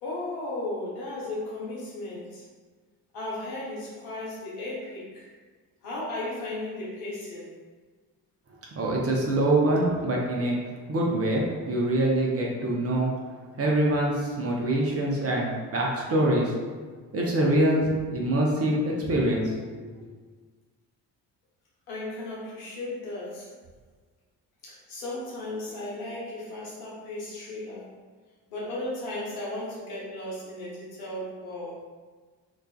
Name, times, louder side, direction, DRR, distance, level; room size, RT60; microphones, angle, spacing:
voice 1, 0.0-2.4 3.1-5.3 5.8-7.5 21.9-23.5 24.6-27.9 28.5-31.7, left 2 dB, 75° left, -7 dB, 1.0 m, -35 dB
voice 2, 8.8-10.6 10.9-13.1 13.6-16.5 17.1-19.9, right 1 dB, 30° right, -2 dB, 0.6 m, -24 dB
2.4 x 2.3 x 2.2 m, 1.5 s
hypercardioid pair, 45°, 49 cm